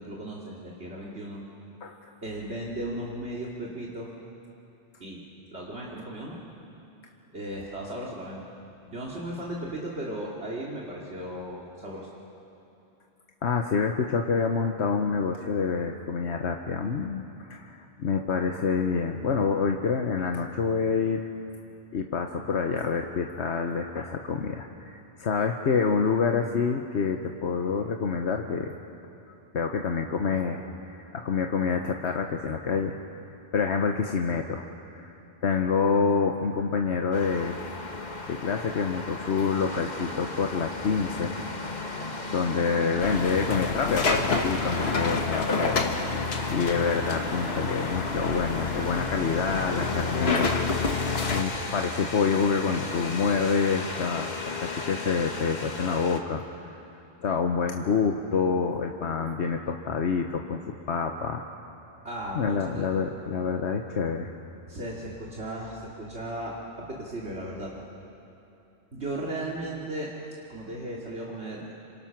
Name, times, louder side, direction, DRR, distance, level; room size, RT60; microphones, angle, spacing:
voice 1, 0.0-1.4 2.2-4.1 5.0-5.2 5.5-6.4 7.3-8.4 8.8-12.1 62.0-62.9 64.7-67.7 68.9-70.1 70.5-71.7, right 1 dB, 80° right, -4 dB, 2.8 m, -36 dB
voice 2, 1.8-2.1 13.4-21.3 21.9-28.7 29.5-30.6 30.9-33.0 33.5-34.6 34.9-35.1 35.4-37.6 38.3-41.3 42.3-46.2 46.5-50.5 51.3-54.3 54.6-56.7 57.2-60.6 60.9-61.5 62.3-64.3, left 5 dB, 85° left, 3 dB, 1.3 m, -27 dB
sound 1, 37.1-56.2, left 3 dB, 40° left, 1.5 m, -36 dB
sound 2, 43.0-51.4, left 4 dB, 65° left, 1.6 m, -28 dB
27.0 x 26.5 x 6.0 m, 2.9 s
omnidirectional pair, 1.1 m